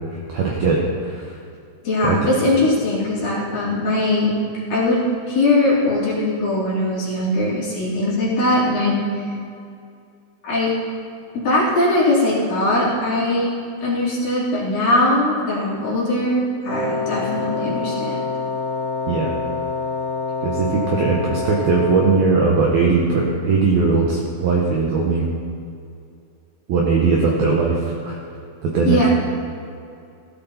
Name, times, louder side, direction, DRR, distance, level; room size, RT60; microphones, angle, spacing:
voice 1, 0.1-1.4 2.0-2.2 19.1-19.3 20.4-25.3 26.7-28.2 28.6-29.1, right 4 dB, 70° right, -2 dB, 2.3 m, -19 dB
voice 2, 1.8-4.3 4.7-5.0 5.3-9.2 10.4-10.7 11.3-13.5 13.8-18.2 28.9-29.1, left 1 dB, 45° left, -7 dB, 4.3 m, -20 dB
Wind instrument woodwind instrument, 16.7-22.4, left 4 dB, 70° left, 3.5 m, -26 dB
16.0 x 13.0 x 4.2 m, 2.4 s
omnidirectional pair, 6.0 m